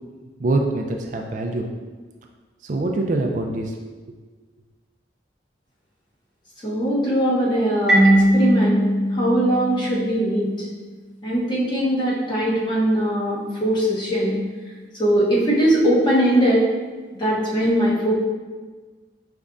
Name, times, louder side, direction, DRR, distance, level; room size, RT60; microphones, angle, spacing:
voice 1, 0.4-1.7 2.6-3.7 4.1-4.2, right 2 dB, 45° right, 2 dB, 0.4 m, -24 dB
voice 2, 6.6-8.8 9.1-10.7 11.2-14.4 15.0-16.7 17.1-18.1, right 1 dB, 25° left, -6 dB, 1.0 m, -20 dB
Marimba xylophone, 7.9-10.5, right 1 dB, ahead, 1.0 m, -19 dB
5.2 x 3.4 x 2.5 m, 1.4 s
head